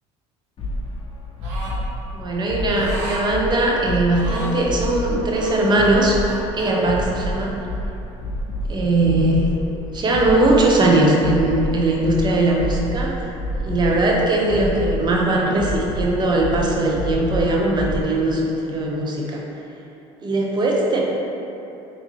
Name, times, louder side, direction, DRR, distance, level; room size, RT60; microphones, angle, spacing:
sound 1, 0.6-18.0, equal, 35° left, 0.5 m, -29 dB
sound 2, 1.4-1.8 2.7-3.3 4.1-4.6 5.3-6.7, right 1 dB, 90° right, 0.7 m, -34 dB
voice 1, 2.1-6.2 6.5-7.5 8.7-9.6 9.9-13.2 13.6-19.4 20.2-21.0, right 2 dB, 30° right, -2 dB, 0.6 m, -19 dB
3.5 x 2.7 x 3.0 m, 2.9 s
supercardioid pair, 95°, 15 cm